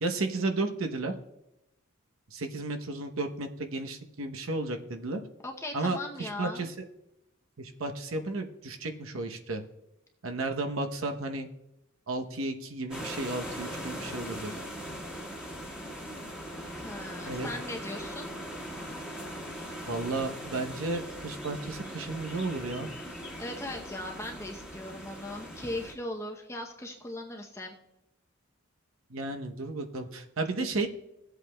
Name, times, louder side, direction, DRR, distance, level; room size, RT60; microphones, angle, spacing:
voice 1, 0.0-1.1 2.3-5.2 5.7-6.7 7.6-9.6 10.2-11.5 12.1-14.5 17.3-17.5 19.9-22.9 29.1-30.9, right 2 dB, 70° right, 5 dB, 0.9 m, -33 dB
voice 2, 5.4-6.7 16.7-18.3 23.1-27.7, left 1 dB, 15° left, 1 dB, 0.7 m, -39 dB
sound 1, 12.9-25.9, equal, 5° right, 1.5 m, -40 dB
16.5 x 8.0 x 2.2 m, 0.90 s
head